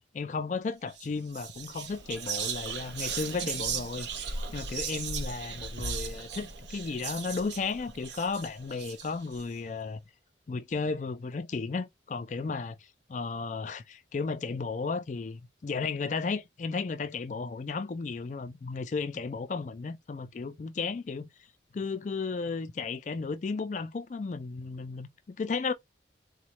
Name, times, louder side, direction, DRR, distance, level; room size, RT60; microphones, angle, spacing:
voice 1, 0.1-10.0 10.5-21.3 21.7-25.7, left 4 dB, 40° left, 0.3 m, -34 dB
Whispering, 0.9-1.1 1.3-9.4, right 5 dB, 70° right, 0.6 m, -37 dB
3.8 x 2.1 x 3.0 m
head